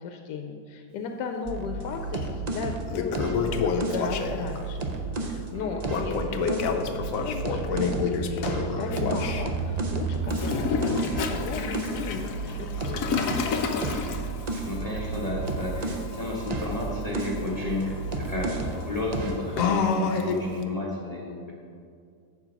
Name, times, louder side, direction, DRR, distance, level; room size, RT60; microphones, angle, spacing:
voice 1, 0.0-4.9 5.2-13.4, left 5 dB, 85° left, 5 dB, 1.2 m, -36 dB
sound 1, 1.5-5.4 5.8-8.2 8.5-16.1 16.5-18.8 19.1-19.4, right 2 dB, 75° right, 0.3 m, -32 dB
Toilet flush, 2.1-2.2 2.7-4.6 5.9-9.4 10.3-20.6, left 5 dB, 65° left, 1.0 m, -30 dB
sound 2, 6.3-15.5, right 11 dB, 55° right, 1.4 m, -39 dB
voice 2, 14.5-21.5, left 1 dB, 25° left, -4 dB, 1.0 m, -32 dB
7.9 x 7.3 x 5.2 m, 2.3 s
omnidirectional pair, 1.8 m